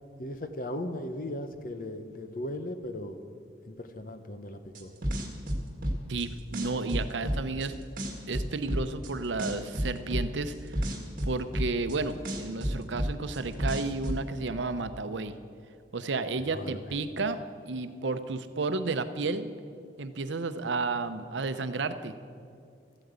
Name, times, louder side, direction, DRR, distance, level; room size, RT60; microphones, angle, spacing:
voice 1, 0.2-3.2 3.7-4.9 16.5-16.8, left 1 dB, 50° left, 8 dB, 0.9 m, -37 dB
sound 1, 4.7-6.2 6.5-7.7 8.0-9.1 9.4-12.0 12.2-14.2, equal, 50° right, 1.8 m, -30 dB
voice 2, 6.1-7.7 8.3-10.7 11.3-15.3 15.9-19.5 20.0-22.2, right 3 dB, 80° right, 11 dB, 0.7 m, -32 dB
14.0 x 8.8 x 8.1 m, 2.4 s
head